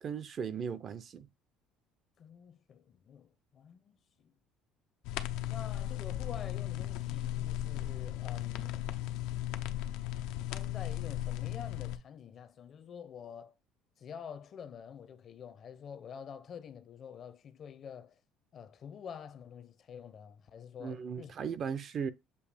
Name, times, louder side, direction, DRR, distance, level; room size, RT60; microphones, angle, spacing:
voice 1, 0.0-1.3 20.8-22.1, right 7 dB, 40° right, 0.5 m, -37 dB
voice 2, 2.2-4.3 5.5-8.9 10.5-13.5 14.0-18.2 18.5-21.3, left 7 dB, 40° left, 0.7 m, -48 dB
sound 1, 5.0-12.0, left 13 dB, 80° left, 0.6 m, -36 dB
6.9 x 2.8 x 4.9 m
cardioid pair, 125°, 0 cm